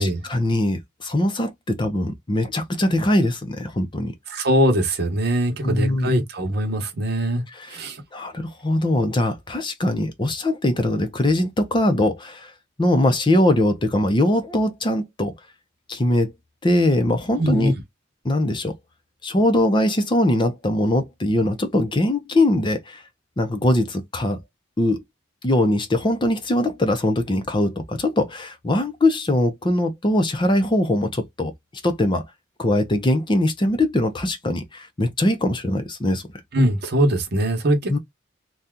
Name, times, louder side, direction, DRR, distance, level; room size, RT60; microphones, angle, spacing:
voice 1, 0.0-4.1 5.6-6.1 7.5-7.8 8.1-12.5 12.8-15.3 15.9-16.3 16.6-17.7 18.2-18.7 19.2-23.0 23.4-24.4 24.8-25.0 25.4-31.5 31.8-32.2 32.6-36.2 37.9-38.0, left 1 dB, 25° left, 0.6 m, -21 dB
voice 2, 4.3-7.4 7.7-8.0 17.4-17.7 36.5-38.0, equal, 55° right, 0.9 m, -21 dB
2.8 x 2.3 x 3.6 m
head